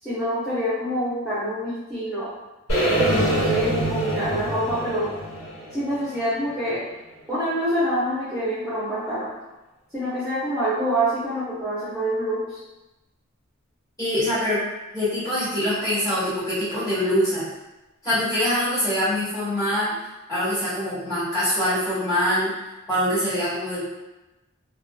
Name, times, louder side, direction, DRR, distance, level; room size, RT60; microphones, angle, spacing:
voice 1, 0.0-2.3 2.9-5.1 5.7-6.8 7.3-9.3 9.9-12.6, right 1 dB, ahead, -12 dB, 0.7 m, -26 dB
sound 1, 2.7-6.7, right 1 dB, 85° left, 1.2 m, -25 dB
voice 2, 14.0-14.6 14.9-17.5 18.0-19.9 20.3-22.5 22.9-23.8, equal, 15° left, -13 dB, 1.3 m, -24 dB
2.7 x 2.3 x 2.2 m, 1.0 s
head